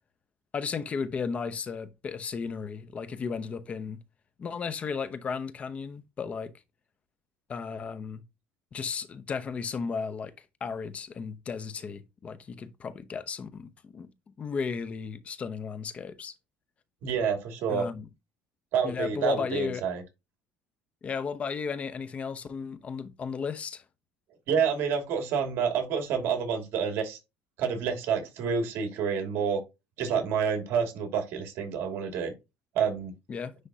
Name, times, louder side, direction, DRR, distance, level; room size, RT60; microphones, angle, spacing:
voice 1, 0.5-4.0 4.4-6.5 7.5-8.2 8.7-10.3 10.6-14.1 14.4-16.3 17.7-18.1 18.8-19.8 21.0-23.8 33.3-33.5, left 5 dB, 30° left, 0.8 m, -34 dB
voice 2, 17.0-17.8 18.7-20.0 24.5-27.2 27.6-29.6 30.0-32.3 32.7-33.1, right 7 dB, 65° right, 2.4 m, -28 dB
9.9 x 3.4 x 2.8 m
cardioid pair, 135°, 4 cm